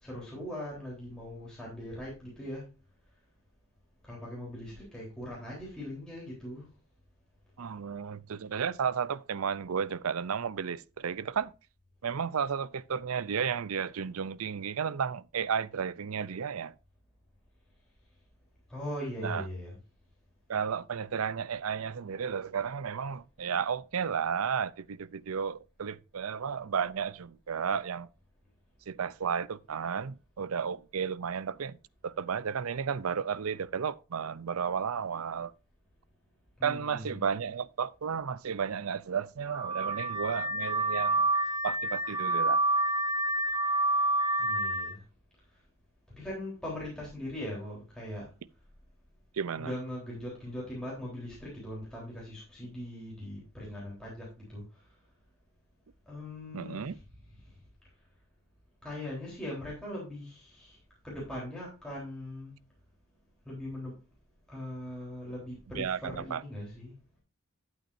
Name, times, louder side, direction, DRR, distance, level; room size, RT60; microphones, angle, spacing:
voice 1, 0.0-2.6 4.0-6.6 18.7-19.8 36.6-37.3 44.4-45.0 46.2-48.3 49.6-54.6 56.1-57.0 58.8-60.8 61.0-62.5 63.5-63.9 64.5-66.9, left 1 dB, 5° left, 3.7 m, -40 dB
voice 2, 7.6-11.5 12.0-16.7 19.2-19.5 20.5-28.1 28.9-31.8 32.0-35.5 36.6-41.3 41.6-42.6 49.3-49.7 56.5-57.0 65.8-66.4, right 6 dB, 80° right, 0.5 m, -33 dB
Car / Alarm, 39.5-44.9, right 2 dB, 20° right, 1.6 m, -28 dB
12.0 x 8.1 x 2.6 m
head